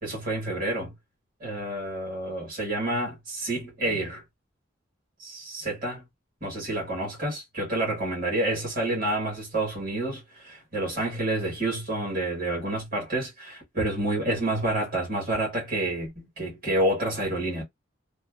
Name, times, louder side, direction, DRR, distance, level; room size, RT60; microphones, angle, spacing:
voice 1, 0.0-0.9 1.4-4.2 5.2-6.0 6.4-17.6, right 1 dB, 45° right, 1.5 m, -29 dB
2.6 x 2.3 x 2.4 m
head